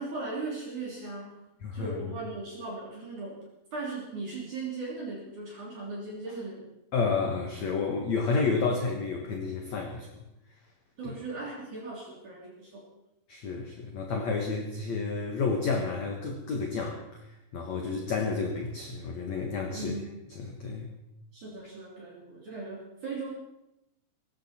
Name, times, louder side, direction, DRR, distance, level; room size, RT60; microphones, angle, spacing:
voice 1, 0.0-1.4 1.7-3.4 3.7-6.7 11.0-12.8 19.7-20.1 21.3-23.3, right 3 dB, 45° right, -4 dB, 4.3 m, -38 dB
voice 2, 1.6-2.1 6.9-10.1 11.0-11.1 13.3-17.2 17.5-19.9 20.4-20.9, left 4 dB, 60° left, 2 dB, 1.9 m, -30 dB
18.5 x 15.5 x 4.4 m, 0.88 s
omnidirectional pair, 5.3 m